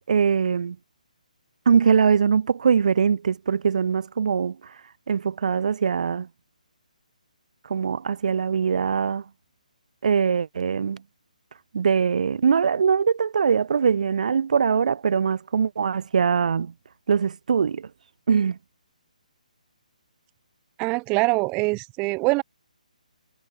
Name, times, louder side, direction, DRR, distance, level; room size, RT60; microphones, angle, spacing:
voice 1, 0.1-0.8 1.6-4.7 5.1-6.3 7.7-9.2 10.0-11.0 11.7-16.7 17.1-17.9 18.3-18.6, right 6 dB, 60° right, 5.0 m, -22 dB
voice 2, 20.8-22.4, right 27 dB, 20° right, 4.3 m, -23 dB
hypercardioid pair, 160°, 4 cm